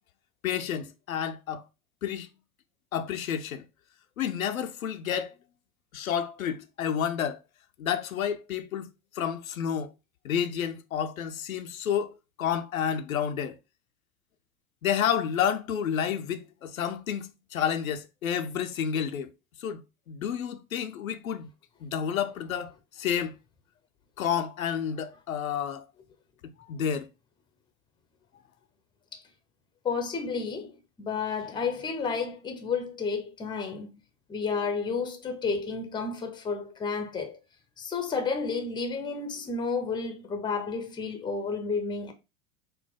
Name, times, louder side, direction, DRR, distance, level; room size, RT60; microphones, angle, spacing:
voice 1, 0.4-1.6 2.0-2.3 2.9-3.6 4.2-5.3 5.9-7.4 7.8-8.9 9.2-9.9 10.2-12.1 12.4-13.6 14.8-19.3 19.6-19.8 20.1-21.5 21.8-22.7 23.0-23.3 24.2-25.8 26.7-27.1, left 8 dB, 80° left, 0.5 m, -30 dB
voice 2, 29.8-33.9 34.3-37.4 37.8-42.1, left 5 dB, 10° left, 0.6 m, -31 dB
4.1 x 2.2 x 3.5 m
figure-of-eight pair, 85°, 41 cm